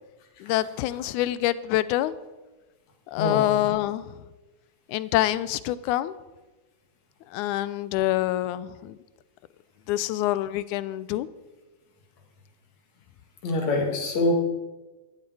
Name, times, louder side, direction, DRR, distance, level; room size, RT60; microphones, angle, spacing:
voice 1, 0.4-2.1 3.1-4.2 4.9-6.1 7.3-9.0 9.9-11.3, left 14 dB, 85° left, 16 dB, 2.0 m, -26 dB
voice 2, 3.1-3.5 13.4-14.3, left 2 dB, 65° left, 1 dB, 3.2 m, -25 dB
14.0 x 11.5 x 4.7 m, 1.2 s
omnidirectional pair, 3.5 m